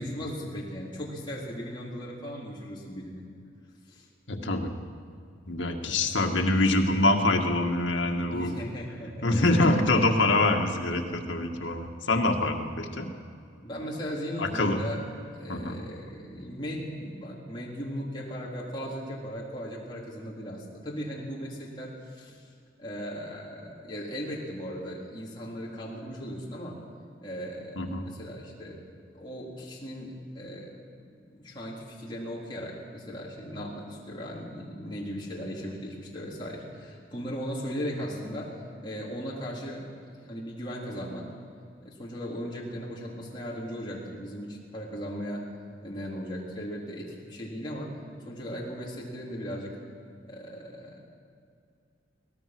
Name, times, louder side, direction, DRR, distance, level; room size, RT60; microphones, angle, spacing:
voice 1, 0.0-3.3 3.9-4.1 5.8-6.1 8.3-9.8 13.6-15.1 15.3-22.4 22.8-26.8 27.2-28.9 29.1-38.5 38.8-41.3 41.8-45.5 45.8-48.0 48.2-49.8 50.2-51.0, equal, 25° left, -5 dB, 3.9 m, -37 dB
voice 2, 4.3-4.7 5.5-8.6 9.2-13.1 14.4-14.8 15.5-15.8 27.8-28.1, left 2 dB, 80° left, 3 dB, 2.0 m, -25 dB
23.5 x 18.5 x 6.2 m, 2.4 s
head